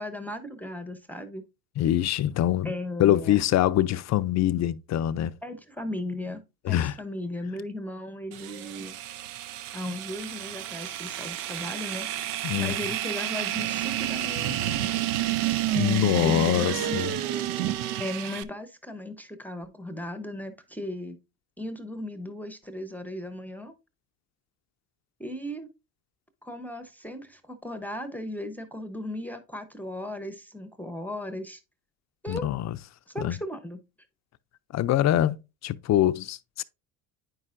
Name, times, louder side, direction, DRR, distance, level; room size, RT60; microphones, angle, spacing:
voice 1, 0.0-1.5 2.6-3.4 5.4-9.0 9.7-12.1 12.6-15.0 16.2-17.1 18.0-21.2 21.6-23.7 25.2-25.7 26.4-31.6 32.2-32.5 33.1-33.8, left 1 dB, 5° left, 0.8 m, -36 dB
voice 2, 1.8-2.7 3.0-5.3 6.7-6.9 12.4-12.8 15.8-17.2 32.3-32.8 33.2-33.4 34.7-35.4 35.6-36.6, left 12 dB, 40° left, 0.5 m, -24 dB
sound 1, 8.3-18.4, right 13 dB, 80° right, 0.7 m, -30 dB
9.1 x 5.5 x 2.5 m
supercardioid pair, 85°, 43 cm